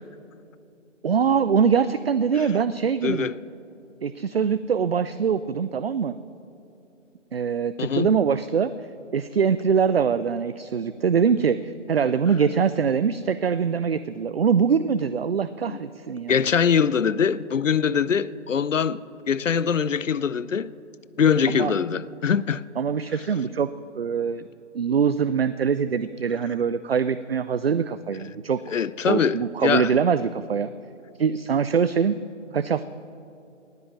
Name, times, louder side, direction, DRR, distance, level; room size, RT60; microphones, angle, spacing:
voice 1, 1.0-3.3 4.0-6.1 7.3-8.7 9.1-16.4 21.5-21.7 22.8-23.7 23.9-24.5 24.7-28.6 29.1-30.7 31.2-32.1 32.5-32.9, right 6 dB, 55° right, 0.5 m, -23 dB
voice 2, 3.0-3.4 7.8-8.1 15.7-15.8 16.3-19.0 19.3-20.7 21.2-22.6 28.7-29.9, left 7 dB, 80° left, 0.7 m, -23 dB
19.0 x 10.5 x 7.2 m
figure-of-eight pair, 160°, 38 cm